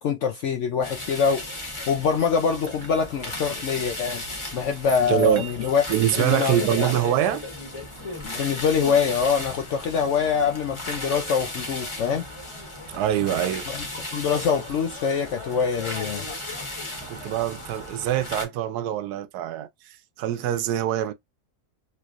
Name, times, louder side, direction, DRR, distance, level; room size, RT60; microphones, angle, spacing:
voice 1, 0.0-1.5 1.9-4.2 4.5-5.8 6.2-6.6 8.2-12.2 13.7-16.3, left 6 dB, 70° left, 0.7 m, -24 dB
sound 1, 0.8-18.4, left 1 dB, 20° left, 1.1 m, -35 dB
sound 2, 2.4-3.6 5.1-6.9 9.0-10.7 12.1-14.2 17.0-17.1, right 7 dB, 45° right, 0.6 m, -50 dB
voice 2, 5.1-5.4 5.9-7.4 7.9-8.4 12.9-13.7 17.0-19.7 20.2-21.1, right 11 dB, 80° right, 1.1 m, -24 dB
3.3 x 3.2 x 2.4 m
omnidirectional pair, 1.7 m